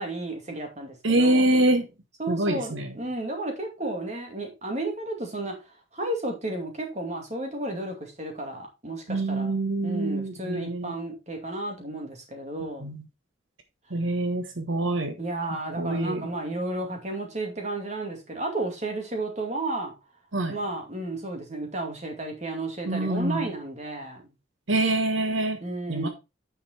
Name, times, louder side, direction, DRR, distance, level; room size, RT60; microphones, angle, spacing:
voice 1, 0.0-1.5 2.2-5.5 5.9-9.5 9.8-12.9 15.2-19.9 20.5-24.2 25.6-26.1, right 2 dB, 35° right, 2.4 m, -32 dB
voice 2, 1.0-1.8 2.3-2.9 9.1-10.9 12.8-13.0 13.9-15.1 15.8-16.2 20.3-20.5 22.9-23.5 24.7-25.6 25.9-26.1, right 2 dB, 80° right, 1.3 m, -25 dB
9.5 x 5.2 x 4.2 m
head